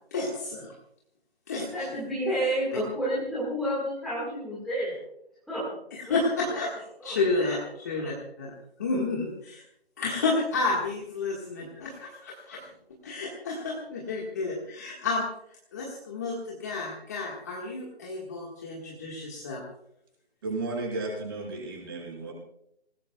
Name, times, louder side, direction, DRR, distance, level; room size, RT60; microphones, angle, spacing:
voice 1, 0.1-0.7 1.5-1.7 6.1-6.7 7.0-7.6 7.8-8.5 8.8-9.6 10.0-12.7 13.0-15.2 15.7-19.6, left 3 dB, 15° left, -3 dB, 1.6 m, -30 dB
voice 2, 1.7-5.0 5.5-5.6 6.1-6.2 7.0-7.5 7.9-8.1, equal, ahead, -9 dB, 1.7 m, -30 dB
voice 3, 20.4-22.3, right 2 dB, 20° right, -1 dB, 6.2 m, -33 dB
27.0 x 19.0 x 2.3 m, 0.74 s
hypercardioid pair, 175°, 32 cm